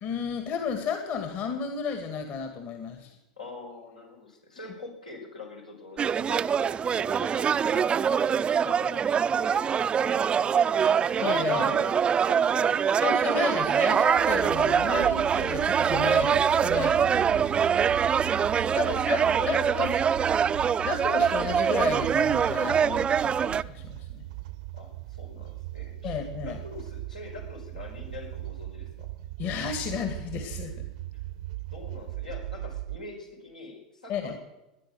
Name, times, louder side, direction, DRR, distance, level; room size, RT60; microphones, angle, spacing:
voice 1, 0.0-3.2 11.2-11.7 13.0-17.6 18.5-20.0 20.8-24.2 26.0-26.6 29.4-30.7 34.1-34.4, left 6 dB, 50° left, 6 dB, 2.0 m, -33 dB
voice 2, 3.4-10.8 11.6-13.0 18.2-20.4 24.7-26.2 26.4-29.1 31.7-34.4, left 4 dB, 90° left, -1 dB, 4.8 m, -44 dB
sound 1, 6.0-23.6, right 7 dB, 25° right, 0.5 m, -24 dB
sound 2, 14.2-33.0, right 16 dB, 65° right, 0.8 m, -39 dB
19.5 x 10.0 x 6.4 m, 0.94 s
hypercardioid pair, 85°, 4 cm